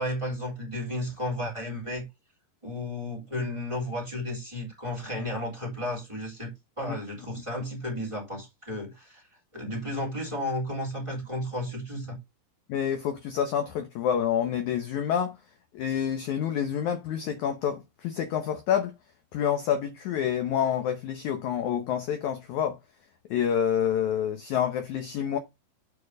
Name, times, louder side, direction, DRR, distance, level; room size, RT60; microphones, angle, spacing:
voice 1, 0.0-2.0 2.6-9.2 9.5-12.2, left 1 dB, 10° right, 2.8 m, -33 dB
voice 2, 12.7-15.4 15.7-18.9 19.3-22.8 23.3-25.4, left 9 dB, 70° left, 1.9 m, -28 dB
7.2 x 4.5 x 6.4 m
omnidirectional pair, 4.4 m